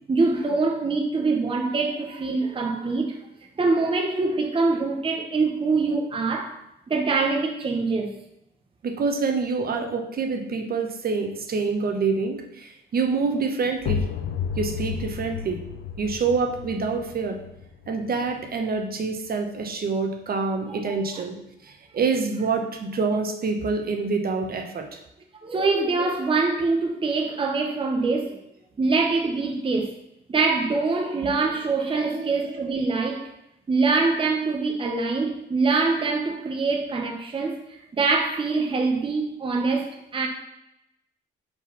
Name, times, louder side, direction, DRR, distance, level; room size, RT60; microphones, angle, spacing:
voice 1, 0.1-3.2 3.6-6.6 6.9-8.1 20.7-20.9 25.4-28.4 28.8-29.9 30.3-33.3 33.7-37.6 37.9-40.3, right 3 dB, 25° right, 0.8 m, -24 dB
voice 2, 8.8-14.0 14.6-15.6 16.0-17.4 17.9-21.4 21.6-25.0 31.2-31.3 31.9-32.6, right 4 dB, 50° right, 1.0 m, -26 dB
sound 1, 13.8-19.3, left 6 dB, 75° left, 0.5 m, -33 dB
5.0 x 4.0 x 5.6 m
cardioid pair, 90°, 20 cm